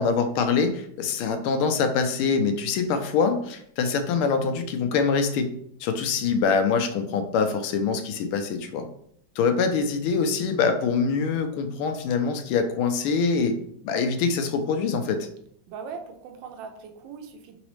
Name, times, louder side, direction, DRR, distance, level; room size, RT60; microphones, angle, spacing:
voice 1, 0.0-5.5 5.8-8.9 9.4-13.6 13.8-15.3, left 5 dB, 90° left, 7 dB, 1.5 m, -24 dB
voice 2, 15.7-17.6, right 5 dB, 70° right, 6 dB, 1.2 m, -40 dB
4.0 x 4.0 x 3.1 m, 0.67 s
omnidirectional pair, 2.3 m